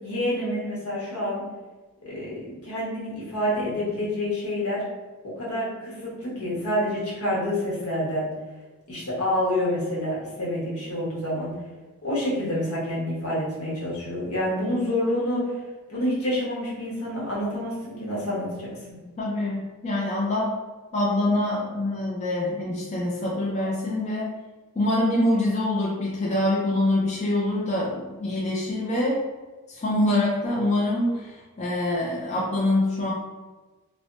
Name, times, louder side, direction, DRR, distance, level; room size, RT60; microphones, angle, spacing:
voice 1, 0.0-1.4 2.0-4.8 5.2-8.3 8.9-11.5 12.0-15.5 15.9-19.0, left 1 dB, 80° left, -6 dB, 1.1 m, -28 dB
voice 2, 19.2-20.5 20.9-24.3 24.8-29.2 29.7-33.1, left 1 dB, 30° left, -4 dB, 0.4 m, -25 dB
3.2 x 2.1 x 2.5 m, 1.2 s
head